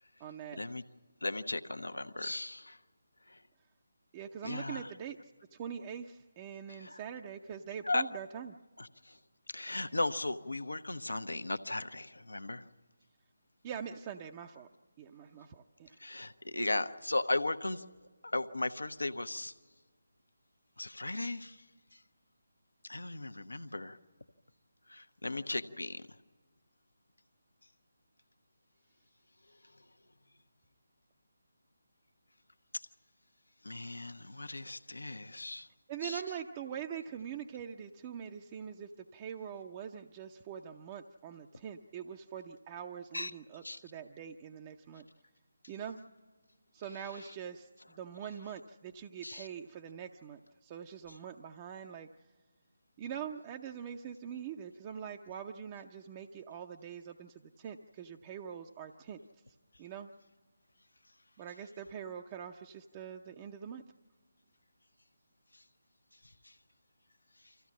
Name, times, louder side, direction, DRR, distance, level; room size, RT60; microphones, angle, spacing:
voice 1, 0.2-0.6 4.1-5.2 5.5-8.6 13.6-14.7 15.0-16.0 35.9-45.1 45.7-46.0 46.7-52.1 53.0-59.2 59.8-60.1 61.4-63.8, right 8 dB, 25° right, 4 dB, 0.6 m, -43 dB
voice 2, 1.2-2.8 3.3-3.4 4.4-4.9 6.7-7.0 7.8-8.0 8.8-9.2 9.5-12.6 16.0-17.8 18.2-19.5 20.8-21.6 21.9-22.0 22.8-24.0 24.9-26.1 32.7-32.8 33.6-35.7 36.0-36.2 43.1-43.3 43.6-43.8 49.2-49.5 66.4-66.5, left 2 dB, 80° left, 9 dB, 1.0 m, -36 dB
25.0 x 15.0 x 7.4 m, 1.5 s
figure-of-eight pair, 155°, 0 cm